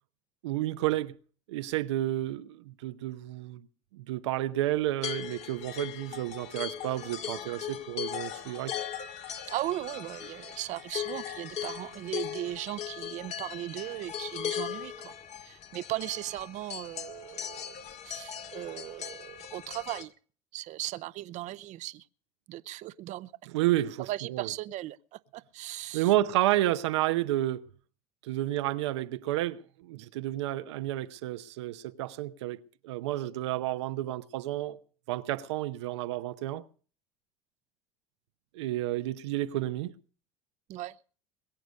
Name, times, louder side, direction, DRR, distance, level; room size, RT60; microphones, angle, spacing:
voice 1, 0.4-1.1 1.5-3.7 3.9-8.8 23.5-24.5 25.9-27.7 28.2-34.8 35.1-36.6 38.5-39.9, right 15 dB, 90° right, 0.8 m, -31 dB
sound 1, 5.0-20.0, left 9 dB, 50° left, 2.0 m, -39 dB
voice 2, 9.5-15.1 15.4-17.8 18.0-20.1 20.5-22.1 22.5-23.3 24.0-26.1 40.7-41.0, right 15 dB, 55° right, 0.7 m, -37 dB
21.5 x 8.1 x 6.4 m
supercardioid pair, 85°, 14 cm